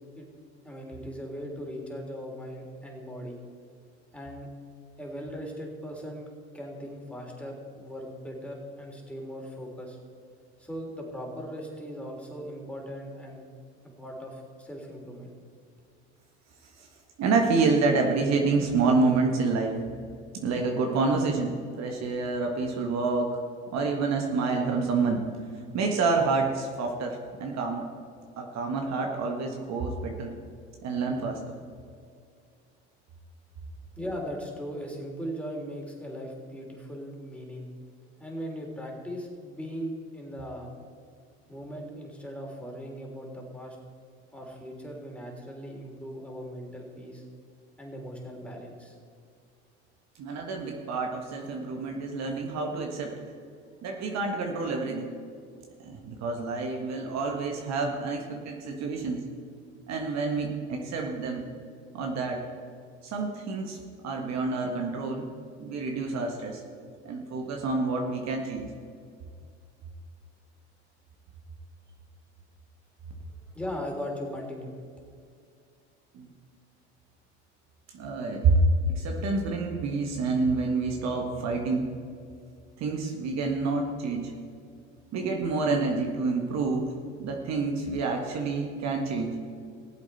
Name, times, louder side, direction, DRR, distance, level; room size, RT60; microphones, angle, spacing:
voice 1, 0.6-3.4 4.1-4.5 5.0-6.3 6.5-10.0 10.6-13.4 13.8-15.3 34.0-37.7 38.2-40.7 41.5-43.8 44.3-47.2 47.8-49.0 73.5-74.7, equal, 5° left, -1 dB, 3.6 m, -39 dB
voice 2, 17.2-19.8 20.4-23.4 23.7-25.2 25.7-27.9 28.4-30.4 30.8-31.5 50.2-53.2 53.8-55.1 55.8-59.2 59.9-61.5 61.9-62.4 63.0-63.8 64.0-65.3 65.6-66.6 67.0-68.6 76.1-76.3 77.9-81.9 82.8-84.3 85.1-86.9 87.2-89.3, right 3 dB, 50° right, 2 dB, 1.7 m, -28 dB
19.0 x 7.9 x 4.3 m, 2.3 s
hypercardioid pair, 75°, 33 cm